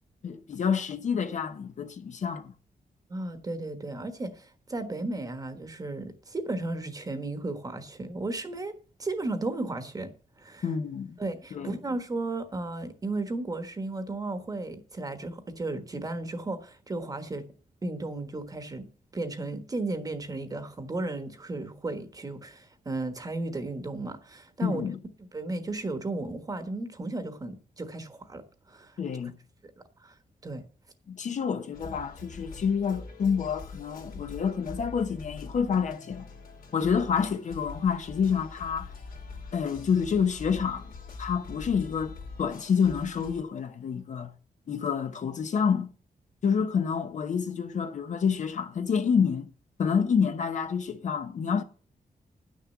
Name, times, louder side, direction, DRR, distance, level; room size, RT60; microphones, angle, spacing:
voice 1, 0.2-2.5 10.6-11.2 11.5-11.8 24.6-25.0 29.0-29.3 31.1-36.3 36.7-38.9 39.5-40.9 41.2-44.3 44.7-45.9 46.4-49.5 49.8-51.6, left 6 dB, 55° left, 0.9 m, -28 dB
voice 2, 3.1-8.7 9.0-10.1 10.4-10.7 11.2-17.5 17.8-18.9 19.1-24.9 25.2-28.4 28.7-29.0 30.0-30.1 30.4-30.6, right 2 dB, 25° right, 1.3 m, -34 dB
sound 1, 31.7-43.4, left 4 dB, 80° left, 2.7 m, -44 dB
10.5 x 6.5 x 7.2 m
wide cardioid pair, 170°, 15 cm